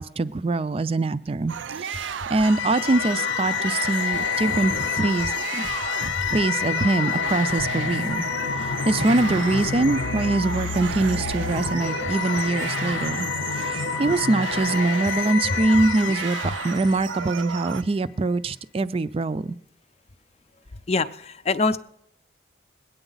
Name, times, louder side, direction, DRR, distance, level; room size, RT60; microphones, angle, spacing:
voice 1, 0.0-5.7 6.0-8.3 8.6-13.3 13.5-16.4 16.6-19.6, right 2 dB, 30° right, 16 dB, 0.4 m, -24 dB
sound 1, 1.5-17.8, right 7 dB, 90° right, 0.5 m, -33 dB
sound 2, 2.4-17.6, left 9 dB, 80° left, 0.6 m, -29 dB
voice 2, 20.9-21.8, left 3 dB, 35° left, 13 dB, 0.5 m, -24 dB
21.0 x 9.0 x 4.0 m, 0.74 s
head